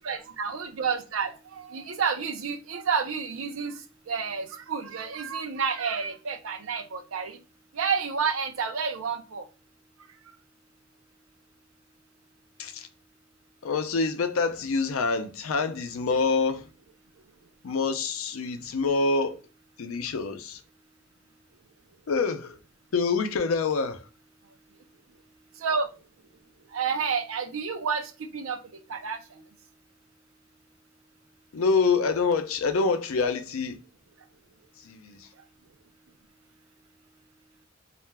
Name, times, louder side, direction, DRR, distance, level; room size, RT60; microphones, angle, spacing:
voice 1, 0.0-3.7 4.1-7.4 7.7-9.4 25.6-25.9 26.7-28.6 28.9-29.2, right 6 dB, 70° right, 0.5 m, -30 dB
voice 2, 13.6-16.7 17.6-19.4 19.8-20.6 22.1-22.6 22.9-24.0 31.5-33.8 34.8-35.3, left 4 dB, 75° left, 0.5 m, -26 dB
2.4 x 2.2 x 3.2 m
head